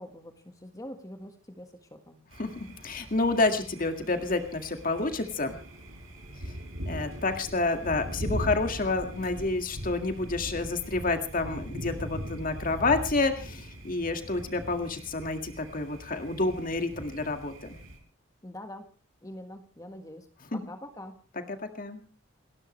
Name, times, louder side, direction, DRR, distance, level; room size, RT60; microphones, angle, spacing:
voice 1, 0.0-2.2 18.4-18.9 19.2-20.3 20.5-21.2, left 1 dB, 15° left, 6 dB, 1.6 m, -44 dB
Thunder, 2.3-18.0, equal, 75° right, 6.8 m, -40 dB
voice 2, 2.4-5.6 6.9-17.8 20.5-20.6 21.5-22.0, left 3 dB, 45° left, 6 dB, 2.0 m, -29 dB
29.0 x 12.5 x 3.2 m, 0.37 s
head